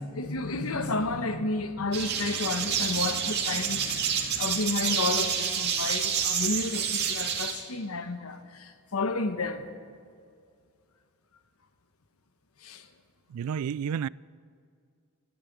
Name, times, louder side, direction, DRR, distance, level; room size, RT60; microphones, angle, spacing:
voice 1, 0.0-9.7 12.6-12.9, left 3 dB, 80° left, 1.1 m, -31 dB
sound 1, 1.9-7.5, right 7 dB, 50° right, 2.1 m, -28 dB
voice 2, 13.3-14.1, right 7 dB, 85° right, 0.3 m, -30 dB
14.0 x 10.5 x 9.7 m
head